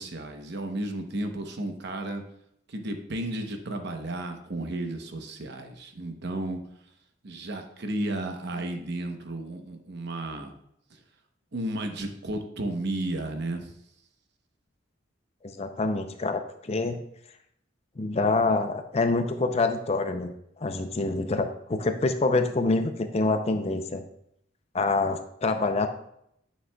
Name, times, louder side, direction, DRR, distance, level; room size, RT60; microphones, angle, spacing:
voice 1, 0.0-2.2 2.7-6.6 7.2-10.5 10.9-11.0 11.5-13.7, right 1 dB, 60° right, 5 dB, 0.9 m, -33 dB
voice 2, 15.4-17.0 18.0-20.3 20.6-24.0 24.7-25.9, left 3 dB, 35° left, 8 dB, 0.5 m, -26 dB
9.8 x 6.2 x 2.3 m, 0.74 s
head